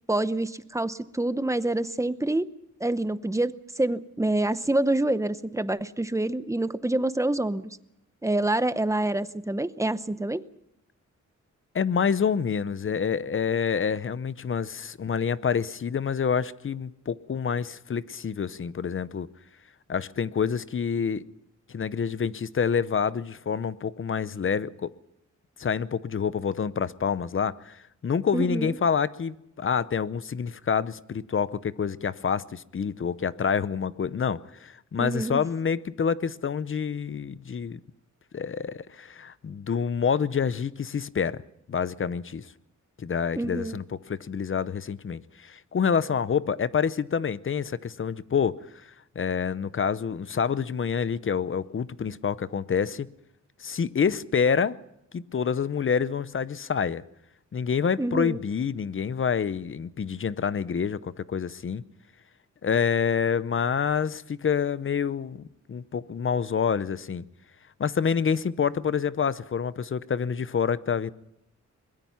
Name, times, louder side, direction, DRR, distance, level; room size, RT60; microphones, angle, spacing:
voice 1, 0.1-2.5 2.8-7.8 8.2-10.4 28.3-28.8 35.0-35.4 43.4-43.8 58.0-58.4, right 2 dB, 10° right, 0.7 m, -27 dB
voice 2, 11.7-19.3 19.9-21.2 21.7-24.9 25.6-37.8 38.3-41.4 41.7-42.5 43.0-43.8 44.1-48.6 48.8-53.1 53.6-54.8 55.1-57.0 57.5-61.8 62.6-67.2 67.8-71.1, left 6 dB, 45° left, 0.7 m, -27 dB
23.0 x 21.0 x 5.7 m
wide cardioid pair, 130°, 30 cm